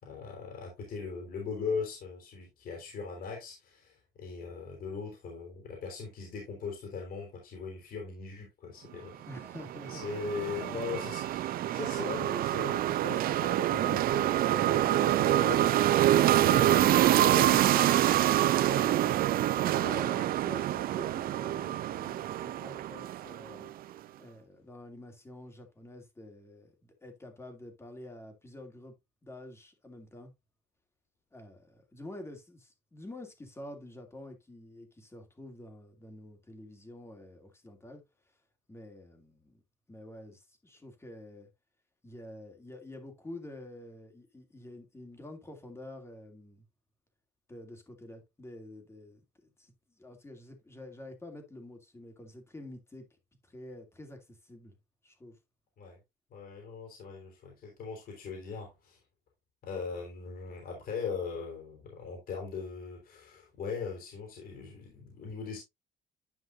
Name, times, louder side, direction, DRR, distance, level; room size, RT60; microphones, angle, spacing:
voice 1, 0.0-9.2 9.9-15.7 15.9-19.1 55.8-56.0 56.3-59.0 59.6-65.6, left 5 dB, 60° left, 3.8 m, -40 dB
voice 2, 9.3-10.0 10.4-11.1 15.4-15.6 16.2-16.9 19.8-23.7 24.2-28.9 29.2-30.3 31.3-38.3 38.7-39.6 39.9-41.5 42.0-46.7 47.5-49.2 49.6-53.0 53.4-54.8 55.0-55.4, left 1 dB, 15° left, 2.5 m, -48 dB
sound 1, 9.4-23.7, right 13 dB, 60° right, 0.5 m, -26 dB
10.5 x 5.4 x 2.7 m
cardioid pair, 110°, 17 cm